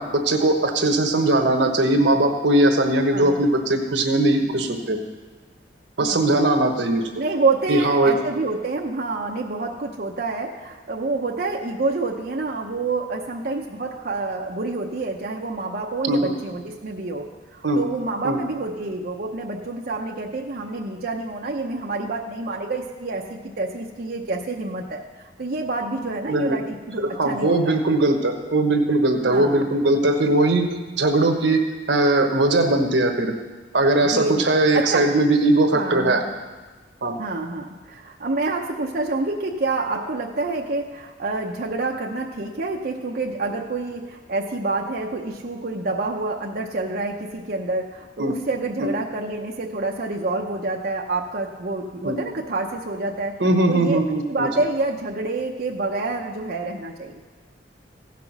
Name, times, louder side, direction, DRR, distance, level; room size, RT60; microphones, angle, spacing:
voice 1, 0.0-5.0 6.0-7.0 7.7-8.2 16.1-16.3 17.6-17.8 18.2-18.4 26.3-26.6 27.0-30.6 31.0-31.6 31.9-33.3 33.7-36.2 37.0-37.2 48.2-48.3 48.8-48.9 52.0-52.2 53.4-54.5, right 2 dB, 80° right, 5 dB, 1.2 m, -20 dB
voice 2, 6.0-6.5 7.1-25.0 25.4-27.8 29.3-29.7 34.0-34.5 34.7-35.0 35.7-36.3 37.2-53.3 53.7-54.0 54.3-57.2, right 3 dB, 55° right, 0 dB, 0.8 m, -27 dB
15.5 x 6.0 x 5.9 m, 1.3 s
head